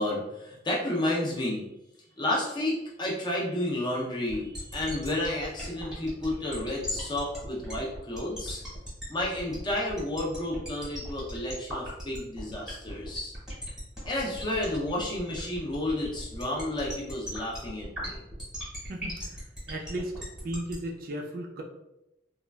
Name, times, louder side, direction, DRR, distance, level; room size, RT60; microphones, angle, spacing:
voice 1, 0.0-1.6 2.2-8.6 9.1-13.3 14.1-18.2, left 1 dB, 25° left, -3 dB, 0.5 m, -31 dB
sound 1, 4.3-20.7, equal, 5° right, 0.9 m, -38 dB
voice 2, 18.9-21.6, right 1 dB, 45° right, 1 dB, 0.4 m, -36 dB
3.0 x 2.3 x 2.2 m, 0.88 s
head